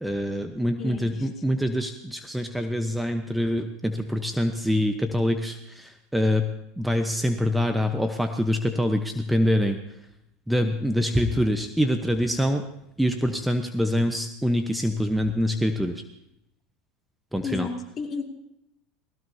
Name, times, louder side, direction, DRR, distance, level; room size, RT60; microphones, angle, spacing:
voice 1, 0.0-6.5 6.8-9.8 10.5-12.6 13.0-16.0 17.3-17.7, equal, 5° right, 6 dB, 1.0 m, -25 dB
voice 2, 0.8-1.3 17.4-18.2, left 5 dB, 35° left, 2 dB, 2.6 m, -33 dB
19.0 x 17.0 x 2.8 m, 0.80 s
hypercardioid pair, 90°, 0 cm